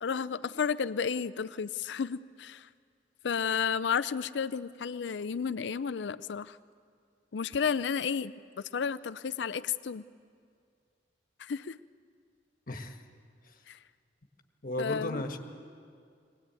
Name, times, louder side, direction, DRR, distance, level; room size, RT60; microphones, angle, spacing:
voice 1, 0.0-2.7 3.2-6.6 7.3-8.3 8.7-10.0 11.4-11.8 13.7-13.8 14.8-15.2, left 6 dB, 75° left, 15 dB, 0.5 m, -32 dB
voice 2, 12.7-13.0 14.6-15.4, left 1 dB, 50° left, 5 dB, 1.5 m, -34 dB
22.5 x 18.5 x 9.0 m, 2.3 s
head